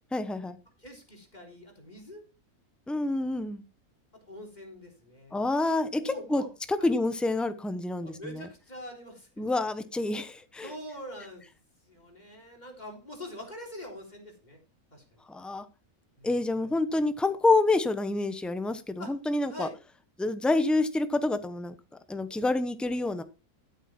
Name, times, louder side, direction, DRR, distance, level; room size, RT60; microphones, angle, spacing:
voice 1, 0.1-0.6 2.9-3.6 5.3-6.4 6.7-8.4 9.4-10.7 15.3-15.6 16.2-19.7 20.2-21.7 22.1-23.2, left 2 dB, ahead, 10 dB, 0.8 m, -27 dB
voice 2, 0.8-2.2 4.3-5.4 5.9-6.5 6.8-6.9 8.0-9.4 10.6-11.5 11.8-14.6 14.9-15.2 16.2-16.7 19.0-19.1 19.5-19.8, equal, 25° left, 1 dB, 3.7 m, -44 dB
13.5 x 8.1 x 4.5 m, 0.31 s
omnidirectional pair, 1.6 m